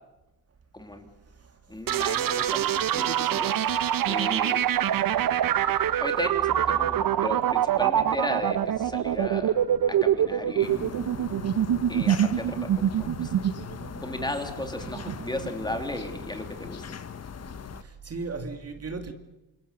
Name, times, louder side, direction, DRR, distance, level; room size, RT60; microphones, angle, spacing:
voice 1, 0.7-1.1 1.7-3.6 4.0-4.6 5.7-9.6 9.9-10.8 11.9-13.3 14.0-17.0, left 1 dB, 10° left, 3.2 m, -35 dB
voice 2, 1.3-1.7 4.0-4.1 5.3-5.7 17.8-19.1, right 3 dB, 40° right, 2.5 m, -38 dB
sound 1, 1.9-15.5, right 10 dB, 60° right, 1.0 m, -25 dB
sound 2, 10.6-17.8, left 7 dB, 40° left, 1.3 m, -40 dB
27.0 x 22.0 x 7.0 m
cardioid pair, 95°, 39 cm